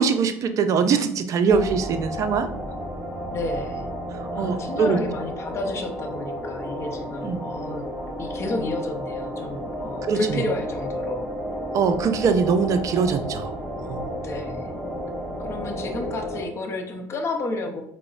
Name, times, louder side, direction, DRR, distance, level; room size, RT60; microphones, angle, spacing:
voice 1, 0.0-2.5 4.2-5.0 7.2-7.4 10.0-10.4 11.7-13.5 13.8-14.0, right 6 dB, 45° right, 9 dB, 0.4 m, -22 dB
sound 1, 1.5-16.5, equal, 15° right, 1.0 m, -32 dB
voice 2, 3.3-3.9 4.3-7.9 8.2-11.3 14.2-14.7 15.4-17.8, left 2 dB, 40° left, 4 dB, 0.6 m, -31 dB
4.6 x 2.0 x 2.4 m, 0.70 s
supercardioid pair, 85°, 7 cm